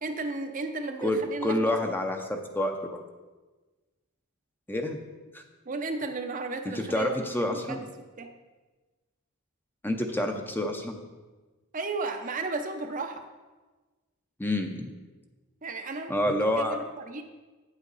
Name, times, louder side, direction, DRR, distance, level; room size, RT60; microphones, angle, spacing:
voice 1, 0.0-1.7 5.7-7.2 7.6-7.8 8.2-8.3 11.7-13.3 15.6-16.1 16.6-17.2, right 3 dB, 35° right, 5 dB, 0.6 m, -34 dB
voice 2, 1.0-3.0 4.7-5.0 5.3-5.4 6.7-7.9 9.8-11.0 14.4-14.9 16.1-16.8, left 1 dB, 10° left, 4 dB, 0.6 m, -28 dB
8.8 x 8.1 x 4.0 m, 1.3 s
head